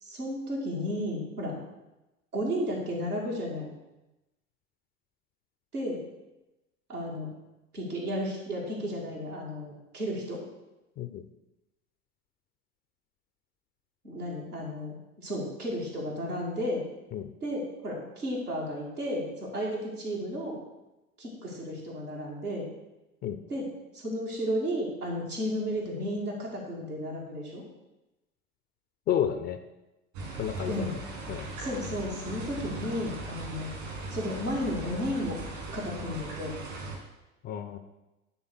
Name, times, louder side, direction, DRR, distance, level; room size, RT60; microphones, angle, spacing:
voice 1, 0.0-1.6 2.3-3.7 5.7-6.0 6.9-7.3 7.7-10.4 14.0-16.8 17.4-20.6 21.2-22.7 23.5-23.7 23.9-27.6 30.6-30.9 31.6-33.7 34.1-35.4 35.7-36.5, equal, 85° right, -4 dB, 2.3 m, -33 dB
voice 2, 29.1-29.6 30.4-31.0 31.3-31.5 37.4-37.8, left 9 dB, 20° left, 8 dB, 0.4 m, -31 dB
sound 1, 30.1-37.0, right 2 dB, 60° right, 2.5 m, -39 dB
9.6 x 3.7 x 6.0 m, 0.99 s
figure-of-eight pair, 80°, 44 cm